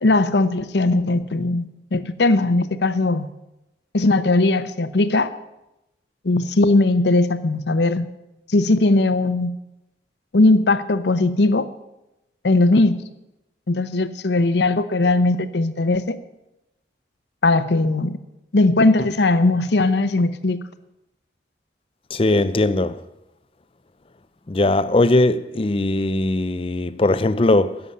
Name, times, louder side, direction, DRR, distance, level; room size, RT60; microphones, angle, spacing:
voice 1, 0.0-1.7 1.9-3.3 3.9-5.3 6.2-8.1 8.5-9.5 10.3-11.7 12.4-13.0 13.7-16.2 17.4-18.2 18.5-20.6, left 2 dB, 75° left, 0.8 m, -18 dB
voice 2, 22.1-23.0 24.5-27.8, left 2 dB, 30° left, 0.5 m, -19 dB
11.0 x 6.8 x 9.6 m
head